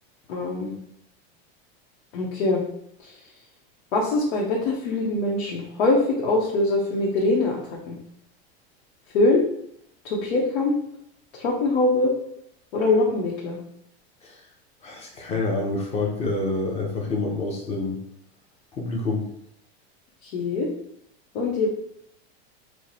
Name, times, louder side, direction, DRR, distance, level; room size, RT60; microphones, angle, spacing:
voice 1, 0.3-0.7 2.1-2.6 3.9-7.6 7.9-8.0 9.1-9.4 10.0-10.7 11.3-12.1 12.7-13.6 20.3-20.7 21.3-21.7, left 2 dB, 90° left, -3 dB, 1.0 m, -23 dB
voice 2, 14.8-18.0 18.7-19.3, left 3 dB, 20° left, 0 dB, 0.6 m, -27 dB
4.6 x 2.1 x 4.0 m, 0.74 s
supercardioid pair, 165°, 31 cm